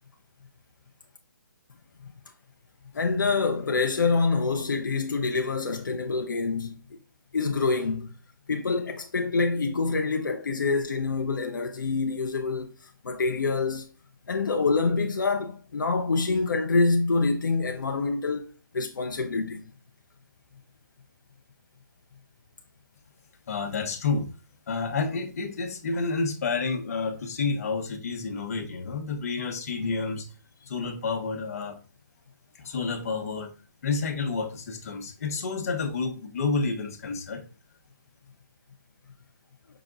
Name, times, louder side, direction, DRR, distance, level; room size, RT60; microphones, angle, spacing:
voice 1, 2.9-7.0 7.3-8.1 8.5-13.9 14.3-19.6 29.7-29.9, left 4 dB, 75° left, 0.7 m, -26 dB
voice 2, 23.5-24.3 24.7-30.3 30.7-31.8 32.5-33.5 33.8-37.4, left 4 dB, 50° left, 1.1 m, -29 dB
5.9 x 2.3 x 3.8 m
hypercardioid pair, 155°, 10 cm